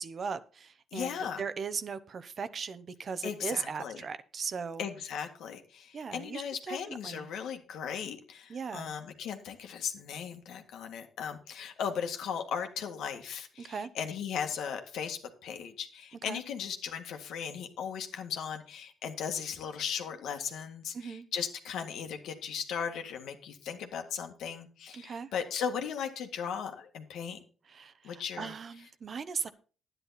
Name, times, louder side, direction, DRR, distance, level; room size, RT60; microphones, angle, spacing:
voice 1, 0.0-4.9 5.9-7.3 8.5-8.9 13.6-13.9 16.3-16.4 20.9-21.3 24.9-25.3 27.7-29.5, right 5 dB, 45° right, 13 dB, 0.9 m, -38 dB
voice 2, 0.9-1.4 3.2-4.0 4.8-27.4 28.0-28.5, left 7 dB, 80° left, 5 dB, 1.9 m, -37 dB
11.0 x 10.0 x 4.2 m, 0.38 s
cardioid pair, 90°, 0 cm